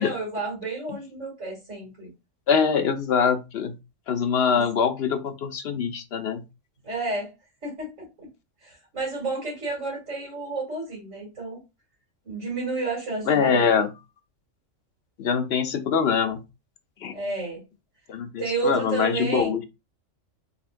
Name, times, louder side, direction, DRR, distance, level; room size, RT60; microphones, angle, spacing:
voice 1, 0.0-2.1 4.5-4.6 6.8-7.3 7.6-7.9 8.2-8.3 8.6-11.6 12.2-13.8 17.1-17.6 18.4-19.6, right 3 dB, 80° right, -6 dB, 3.1 m, -31 dB
voice 2, 2.5-3.7 4.1-6.4 13.3-13.9 15.2-16.4 17.0-17.1 18.1-19.6, left 6 dB, 60° left, 6 dB, 0.9 m, -23 dB
4.2 x 4.1 x 2.5 m, 0.25 s
omnidirectional pair, 1.3 m